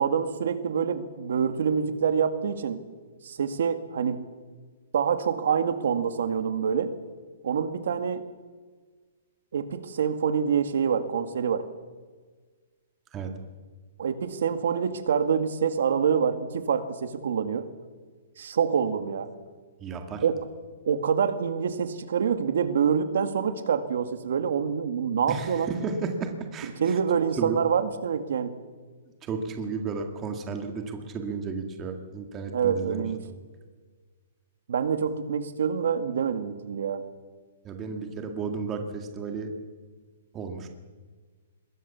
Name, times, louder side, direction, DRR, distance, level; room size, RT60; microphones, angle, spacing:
voice 1, 0.0-2.8 3.2-4.3 4.9-6.9 7.4-8.2 9.5-11.6 14.0-17.7 18.4-19.3 20.2-20.5 20.9-25.7 26.8-28.6 32.5-33.2 34.7-37.0, right 7 dB, 60° right, 10 dB, 2.0 m, -26 dB
voice 2, 19.8-20.2 25.3-27.0 27.4-27.6 29.2-33.0 37.6-39.5 40.3-40.7, right 5 dB, 15° right, 5 dB, 1.9 m, -33 dB
26.0 x 21.5 x 7.1 m, 1.5 s
hypercardioid pair, 180°, 0 cm